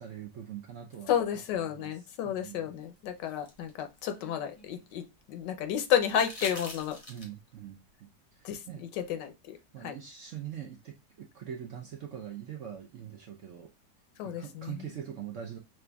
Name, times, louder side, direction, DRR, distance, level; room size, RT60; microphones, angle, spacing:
voice 1, 0.0-1.2 1.5-2.7 7.1-8.9 9.7-13.7 14.2-15.6, right 9 dB, 65° right, 0.8 m, -43 dB
voice 2, 1.1-7.0 8.4-8.6 9.0-9.6 9.8-9.9 14.2-14.9, left 9 dB, 80° left, 1.3 m, -31 dB
sound 1, 2.8-5.1 6.0-7.5 9.2-9.3, left 1 dB, 30° left, 0.7 m, -45 dB
5.8 x 2.5 x 2.2 m
omnidirectional pair, 1.9 m